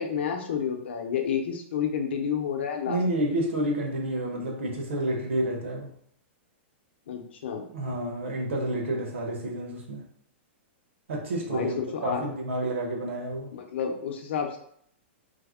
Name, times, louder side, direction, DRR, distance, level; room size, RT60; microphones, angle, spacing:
voice 1, 0.0-3.0 7.1-7.7 11.4-12.2 13.5-14.6, left 7 dB, 65° left, 4 dB, 0.6 m, -30 dB
voice 2, 2.9-5.9 7.7-10.0 11.1-13.5, right 1 dB, 80° right, 1 dB, 1.0 m, -29 dB
3.3 x 2.1 x 3.5 m, 0.66 s
supercardioid pair, 180°, 6 cm